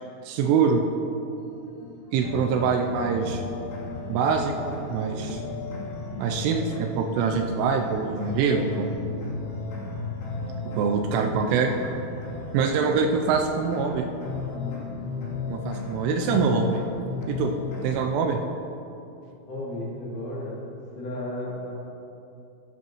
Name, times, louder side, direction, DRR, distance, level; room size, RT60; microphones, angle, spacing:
voice 1, 0.3-0.8 2.1-3.4 4.1-5.4 6.2-8.9 10.7-11.9 12.5-14.1 15.5-16.8 17.3-17.5 17.8-18.4, right 5 dB, 85° right, 3 dB, 3.1 m, -24 dB
sound 1, 1.4-14.2 14.5-16.8, left 2 dB, 25° left, 2.5 m, -42 dB
sound 2, 2.2-18.2, left 3 dB, 75° left, 4.9 m, -35 dB
voice 2, 19.5-20.6 20.9-21.7, left 1 dB, 50° left, -7 dB, 3.1 m, -33 dB
12.5 x 11.0 x 3.1 m, 2.7 s
omnidirectional pair, 5.6 m